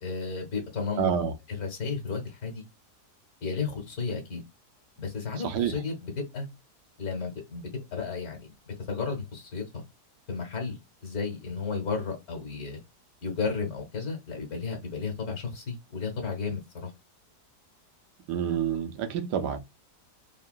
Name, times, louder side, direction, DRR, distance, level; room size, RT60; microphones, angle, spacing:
voice 1, 0.0-1.1 1.5-2.6 3.4-4.4 5.0-6.5 7.0-7.6 7.9-9.8 10.3-10.8 11.0-12.8 13.2-16.9, left 5 dB, 65° left, 1.5 m, -33 dB
voice 2, 1.0-1.3 5.4-5.8 18.3-19.6, right 8 dB, 85° right, 1.2 m, -28 dB
3.7 x 2.2 x 2.4 m
omnidirectional pair, 1.8 m